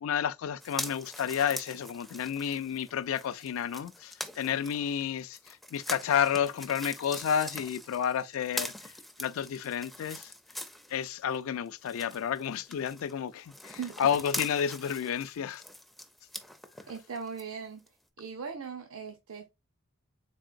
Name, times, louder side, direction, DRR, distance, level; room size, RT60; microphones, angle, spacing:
voice 1, 0.0-8.7 9.2-10.3 10.9-15.6, left 8 dB, 75° left, 0.3 m, -31 dB
sound 1, 0.6-11.4 11.7-17.4 17.9-18.0, left 1 dB, ahead, 0.4 m, -43 dB
voice 2, 16.9-17.8 18.2-19.5, right 6 dB, 75° right, 0.6 m, -39 dB
3.7 x 3.6 x 2.5 m
head